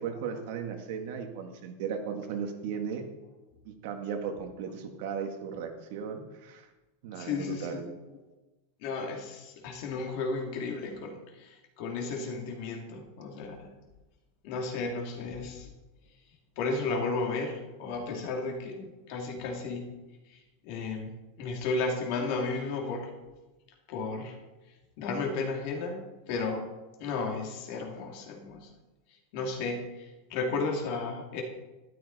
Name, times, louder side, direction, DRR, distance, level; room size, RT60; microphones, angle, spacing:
voice 1, 0.0-3.1 3.7-6.7 7.0-7.9, right 6 dB, 55° right, 5 dB, 1.8 m, -36 dB
voice 2, 7.2-7.9 8.8-13.7 14.4-15.7 16.6-19.9 20.3-20.4 20.6-21.1 21.4-23.1 23.9-24.4 25.0-26.7 27.0-28.7 29.3-31.4, left 3 dB, 50° left, 1 dB, 2.8 m, -33 dB
13.0 x 12.0 x 4.2 m, 1.1 s
supercardioid pair, 165°, 0 cm